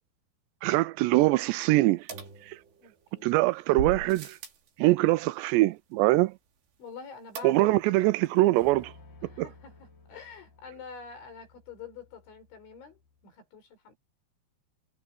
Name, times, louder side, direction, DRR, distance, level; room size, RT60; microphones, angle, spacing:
voice 1, 0.6-2.1 2.5-2.6 3.2-4.4 4.8-6.3 7.4-8.9 9.4-9.5, right 19 dB, 85° right, 2.5 m, -23 dB
sound 1, 2.1-3.1 3.8-4.7 7.4-7.9 8.2-8.3 8.6-8.7, right 6 dB, 65° right, 5.6 m, -38 dB
voice 2, 2.8-3.3 6.8-7.8 9.3-9.7 10.1-13.0 13.2-14.0, left 6 dB, 75° left, 8.1 m, -46 dB
sound 2, 8.2-13.2, left 3 dB, 50° left, 4.8 m, -55 dB
omnidirectional pair, 5.4 m